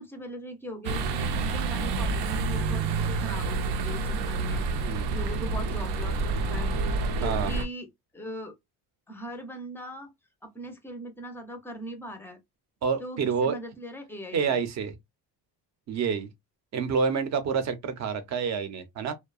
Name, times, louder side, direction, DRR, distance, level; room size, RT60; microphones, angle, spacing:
voice 1, 0.0-4.7 5.1-6.7 7.2-7.9 8.1-8.5 9.1-10.1 10.4-12.4 13.0-14.6, equal, 5° left, 0.4 m, -40 dB
sound 1, 0.8-7.6, right 3 dB, 85° right, 0.6 m, -28 dB
voice 2, 12.8-13.6 14.3-15.0 15.9-16.3 16.7-19.1, right 6 dB, 45° right, 0.6 m, -28 dB
2.6 x 2.1 x 2.3 m
cardioid pair, 135°, 40 cm